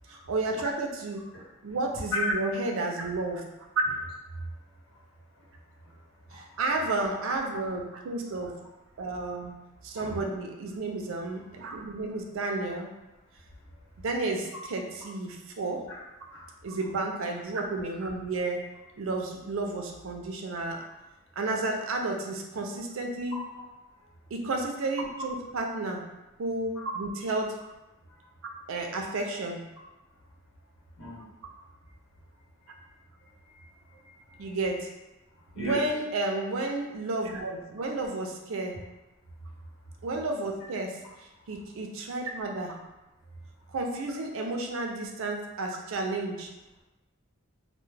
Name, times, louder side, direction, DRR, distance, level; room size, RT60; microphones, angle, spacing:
voice 1, 0.1-1.3 1.6-3.4 6.3-8.6 9.0-9.5 9.8-12.9 14.0-15.8 16.6-18.6 19.0-20.8 21.4-23.4 24.3-26.0 26.4-27.6 28.7-29.6 34.4-34.9 35.6-38.8 40.0-42.8 43.7-46.5, right 2 dB, 80° right, 2 dB, 0.4 m, -32 dB
voice 2, 9.9-10.3 16.3-16.4 23.3-23.4 31.0-31.3 34.0-34.4 35.5-35.8, right 1 dB, 85° left, -7 dB, 1.0 m, -38 dB
2.2 x 2.1 x 3.2 m, 1.0 s
head